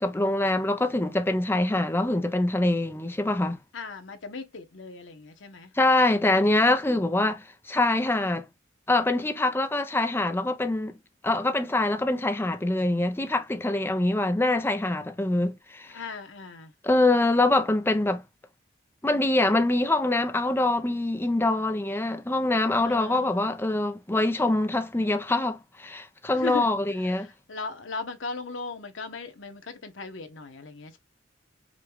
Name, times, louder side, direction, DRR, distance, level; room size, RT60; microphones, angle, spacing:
voice 1, 0.0-3.6 5.8-8.5 8.9-10.9 11.2-15.9 16.8-18.2 19.0-27.3, left 2 dB, 10° left, 0.5 m, -24 dB
voice 2, 3.7-5.7 15.9-16.7 22.8-23.5 26.2-26.7 27.0-31.0, left 4 dB, 80° left, 1.0 m, -38 dB
5.0 x 2.3 x 3.5 m
head